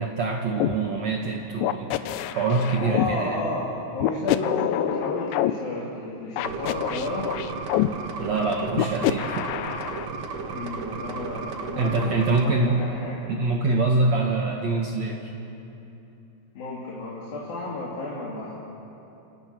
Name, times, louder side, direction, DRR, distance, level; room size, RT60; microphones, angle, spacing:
voice 1, 0.0-3.4 8.2-9.5 11.8-12.8 13.3-15.3, right 3 dB, 60° right, 1 dB, 1.8 m, -25 dB
sound 1, 0.6-0.8 1.6-3.1 4.0-5.5 6.4-7.9 8.7-10.1, left 14 dB, 85° left, 3.0 m, -26 dB
voice 2, 2.7-7.3 10.5-13.2 16.6-18.5, left 2 dB, 55° left, -6 dB, 4.3 m, -32 dB
sound 2, 6.4-12.4, right 4 dB, 75° right, 1.4 m, -34 dB
28.0 x 27.5 x 6.1 m, 2.9 s
omnidirectional pair, 5.2 m